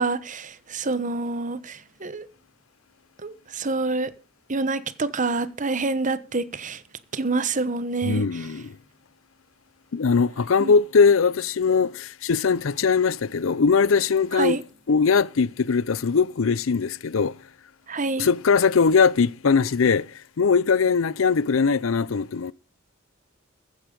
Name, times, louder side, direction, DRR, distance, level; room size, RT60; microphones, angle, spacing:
voice 1, 0.0-2.3 3.2-4.1 4.5-6.8 7.1-8.5 10.6-10.7 14.3-14.6 17.9-18.3, right 3 dB, 40° right, 1.1 m, -27 dB
voice 2, 8.0-8.7 9.9-14.6 14.9-17.4 18.2-22.5, left 5 dB, 75° left, 0.6 m, -21 dB
15.0 x 9.1 x 5.2 m
head